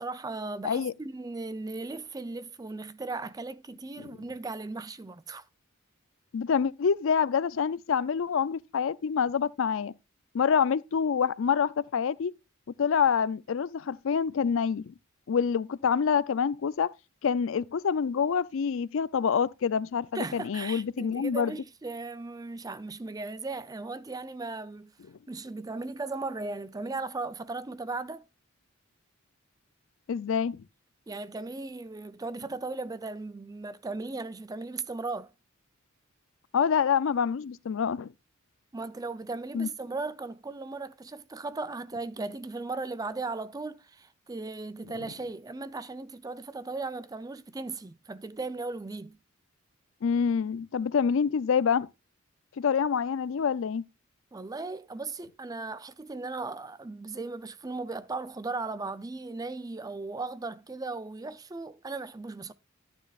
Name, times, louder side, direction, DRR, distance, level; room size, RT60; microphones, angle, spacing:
voice 1, 0.0-5.5 20.1-24.9 25.3-28.2 31.1-35.3 38.7-49.2 54.3-62.5, right 3 dB, 15° right, 0.4 m, -37 dB
voice 2, 6.3-9.9 10.3-12.3 12.8-14.9 15.3-16.9 17.2-21.5 30.1-30.6 36.5-38.1 39.5-39.7 50.0-51.9 52.6-53.8, left 6 dB, 65° left, 0.4 m, -26 dB
11.5 x 9.9 x 2.4 m
head